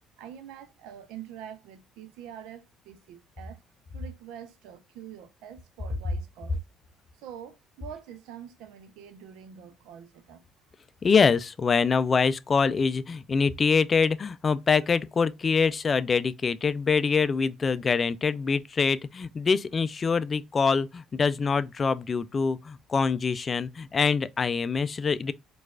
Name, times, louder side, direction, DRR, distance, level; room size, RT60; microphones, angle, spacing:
voice 1, 0.2-3.6 3.9-6.6 7.2-10.4, right 9 dB, 85° right, 0.6 m, -45 dB
voice 2, 11.0-25.3, left 5 dB, 35° left, 0.3 m, -24 dB
4.5 x 2.4 x 2.2 m
cardioid pair, 95°, 0 cm